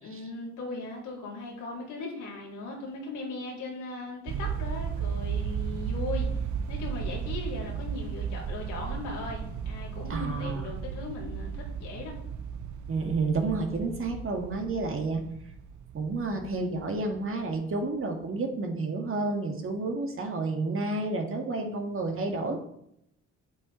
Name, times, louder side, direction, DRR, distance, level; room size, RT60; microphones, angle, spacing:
voice 1, 0.0-6.3 6.7-12.1, left 3 dB, 85° left, -3 dB, 3.7 m, -38 dB
sound 1, 4.3-17.6, right 7 dB, 70° right, 0.9 m, -35 dB
voice 2, 10.1-10.7 12.9-15.2 15.9-22.6, right 3 dB, 45° right, 3 dB, 2.0 m, -30 dB
8.2 x 8.1 x 4.5 m, 0.74 s
cardioid pair, 90°, 30 cm